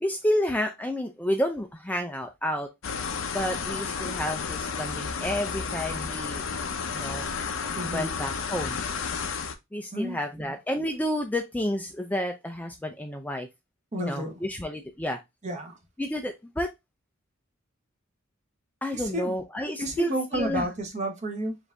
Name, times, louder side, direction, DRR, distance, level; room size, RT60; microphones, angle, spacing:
voice 1, 0.0-2.7 3.3-6.4 6.9-7.3 7.9-8.8 9.7-13.5 14.0-15.2 16.0-16.7 18.8-20.7, equal, 10° left, 0.4 m, -30 dB
sound 1, 2.8-9.5, left 5 dB, 65° left, 0.6 m, -32 dB
voice 2, 7.7-8.1 9.9-10.5 13.9-14.4 15.4-15.8 18.9-19.3 19.8-21.6, right 1 dB, 35° right, 1.2 m, -31 dB
5.0 x 2.6 x 3.4 m
head